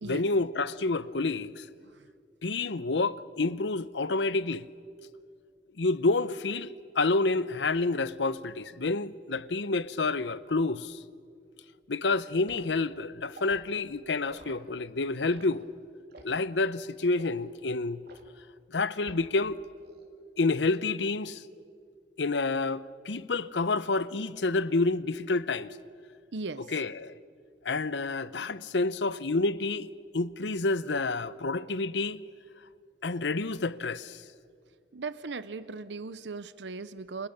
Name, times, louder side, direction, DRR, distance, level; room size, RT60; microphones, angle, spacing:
voice 1, 0.0-1.7 2.4-4.7 5.8-11.0 11.9-15.6 16.2-18.0 18.7-19.6 20.4-21.4 22.2-25.8 26.7-27.1 27.6-29.9 30.1-32.2 33.0-34.2, left 3 dB, 85° left, 0.8 m, -29 dB
Liquid, 12.5-12.7 13.3-13.6 14.3-14.6 15.2-15.5 16.1-16.4 17.1-17.4 18.1-18.3 19.0-19.4 19.8-20.1, right 2 dB, 65° right, 3.3 m, -50 dB
voice 2, 26.3-26.7 34.9-37.3, right 3 dB, 90° right, 0.8 m, -38 dB
29.5 x 27.0 x 6.7 m
head